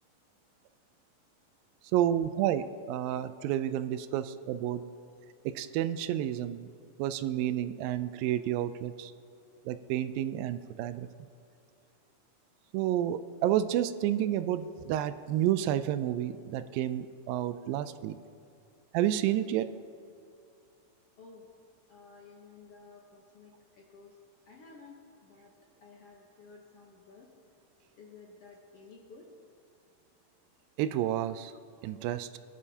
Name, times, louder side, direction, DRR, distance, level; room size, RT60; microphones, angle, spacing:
voice 1, 1.9-4.8 5.5-6.7 7.0-9.1 9.7-11.1 12.7-18.2 18.9-19.7 30.8-31.5 31.8-32.4, right 12 dB, 85° right, 12 dB, 2.3 m, -30 dB
voice 2, 21.2-21.5 21.9-24.1 24.5-25.5 25.8-27.3 28.0-29.3, left 4 dB, 65° left, -2 dB, 1.6 m, -53 dB
21.0 x 11.0 x 2.8 m, 2.4 s
omnidirectional pair, 4.0 m